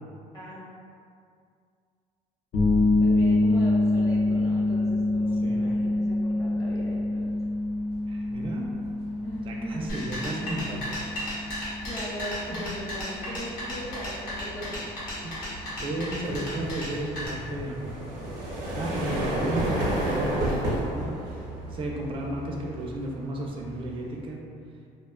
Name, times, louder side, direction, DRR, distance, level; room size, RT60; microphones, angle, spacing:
voice 1, 0.3-0.7 3.0-7.3 9.2-10.0 11.8-14.8, equal, 20° left, -8 dB, 0.8 m, -39 dB
sound 1, 2.5-18.5, left 2 dB, 55° left, 0.4 m, -27 dB
sound 2, 6.9-7.2 7.6-24.3, right 1 dB, 85° right, 0.6 m, -34 dB
voice 2, 8.1-8.7 9.4-11.0 12.5-12.6 15.2-18.1 18.7-19.8 20.0-21.2 21.7-24.4, right 1 dB, 35° right, -1 dB, 0.4 m, -34 dB
sound 3, 9.9-17.3, equal, 80° left, 1.0 m, -35 dB
2.5 x 2.2 x 2.3 m, 2.3 s
cardioid pair, 115°, 15 cm